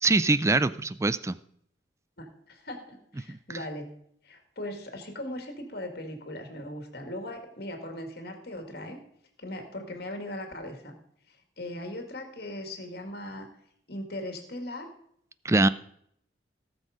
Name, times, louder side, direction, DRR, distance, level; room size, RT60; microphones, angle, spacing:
voice 1, 0.0-1.4 3.3-3.6 15.4-15.7, right 3 dB, 15° right, 15 dB, 0.4 m, -23 dB
voice 2, 2.2-3.9 4.2-9.0 9.4-11.0 11.3-13.5 13.9-14.9, left 1 dB, 55° left, 5 dB, 2.1 m, -39 dB
17.5 x 6.4 x 5.0 m, 0.69 s
head